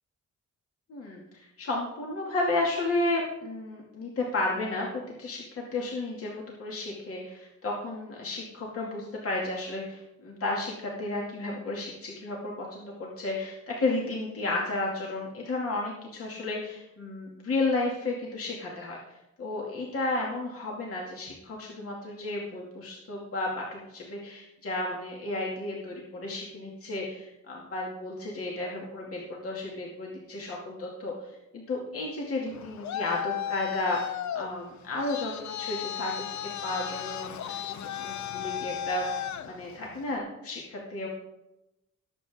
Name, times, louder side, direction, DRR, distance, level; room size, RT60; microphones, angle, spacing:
voice 1, 0.9-19.0 19.4-36.3 36.6-37.5 38.0-41.1, left 2 dB, 50° left, -3 dB, 2.3 m, -33 dB
Traffic noise roadway noise, 32.5-40.2, left 10 dB, 75° left, 0.7 m, -35 dB
19.0 x 7.8 x 3.6 m, 0.90 s
wide cardioid pair, 135°, 29 cm